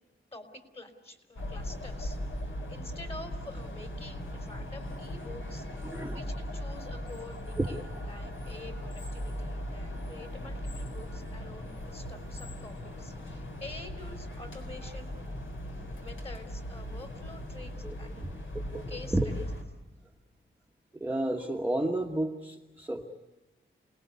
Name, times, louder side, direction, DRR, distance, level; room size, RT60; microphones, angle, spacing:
voice 1, 0.3-15.1 15.7-17.7 18.0-18.2 18.9-19.5, left 2 dB, 30° left, 6 dB, 4.0 m, -48 dB
sound 1, 1.4-19.6, left 1 dB, 70° left, 4.1 m, -39 dB
voice 2, 5.8-6.2 7.6-7.7 17.8-17.9 18.7-19.3 20.9-23.1, right 1 dB, 10° right, 0 dB, 1.5 m, -31 dB
28.5 x 20.0 x 8.3 m, 1.1 s
wide cardioid pair, 150°, 21 cm